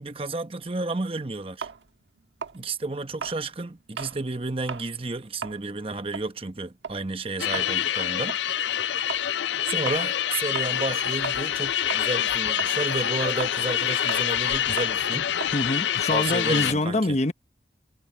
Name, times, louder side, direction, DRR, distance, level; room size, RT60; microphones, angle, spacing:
voice 1, 0.0-1.7 2.5-8.4 9.6-15.3 16.1-17.2, right 3 dB, 30° right, 0.9 m, -31 dB
sound 1, 1.6-4.2 4.6-4.9 5.3-11.6 11.9-16.7, right 6 dB, 85° right, 1.4 m, -38 dB
sound 2, 7.4-16.7, left 10 dB, 85° left, 0.5 m, -26 dB
voice 2, 15.5-17.3, left 2 dB, 40° left, 0.9 m, -25 dB
head